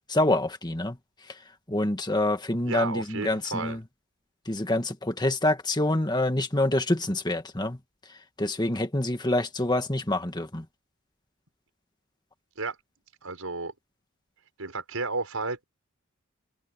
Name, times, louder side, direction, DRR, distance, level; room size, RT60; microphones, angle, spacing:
voice 1, 0.1-1.0 1.3-1.4 1.7-3.8 4.5-7.8 8.4-10.7, left 1 dB, 20° left, 1.8 m, -26 dB
voice 2, 2.7-3.8 12.6-12.8 13.2-13.7 14.6-15.6, right 3 dB, 85° right, 5.5 m, -32 dB
head